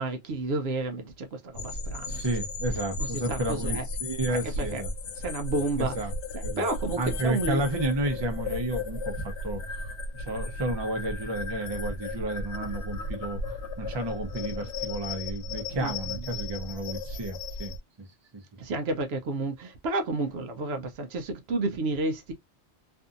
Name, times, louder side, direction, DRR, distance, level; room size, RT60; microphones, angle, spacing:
voice 1, 0.0-2.3 3.0-3.8 4.3-4.8 5.2-5.9 6.3-7.6 15.8-15.9 18.6-22.3, right 2 dB, 70° right, 0.8 m, -31 dB
sound 1, 1.5-17.8, left 2 dB, 85° left, 0.9 m, -35 dB
voice 2, 2.1-4.9 5.8-6.1 6.4-6.6 7.0-9.9 10.1-18.1, right 1 dB, 30° right, 0.6 m, -32 dB
2.6 x 2.6 x 2.4 m
omnidirectional pair, 1.1 m